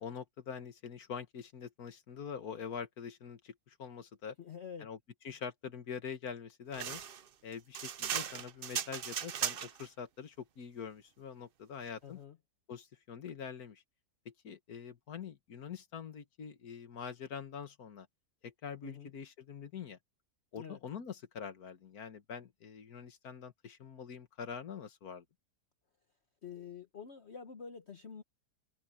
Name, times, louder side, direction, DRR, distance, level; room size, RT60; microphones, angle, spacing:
voice 1, 0.0-4.4 4.8-5.0 5.2-7.0 7.4-12.2 12.7-13.8 14.3-18.1 18.4-20.0 20.5-25.2, left 7 dB, 65° left, 1.9 m, -44 dB
voice 2, 4.4-4.9 12.0-12.4 18.8-19.1 20.6-20.8 26.4-28.2, left 7 dB, 45° left, 1.3 m, -47 dB
sound 1, 6.7-9.9, right 8 dB, 55° right, 0.6 m, -37 dB
omnidirectional pair, 1.7 m